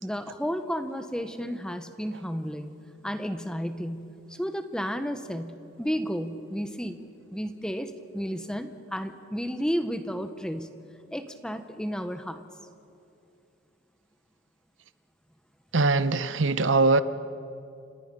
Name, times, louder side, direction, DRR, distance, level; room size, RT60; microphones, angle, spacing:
voice 1, 0.0-2.7 3.0-10.7 11.1-12.4, equal, 5° left, 0.9 m, -32 dB
voice 2, 15.7-17.0, right 3 dB, 80° right, 0.9 m, -22 dB
29.5 x 26.0 x 5.4 m
head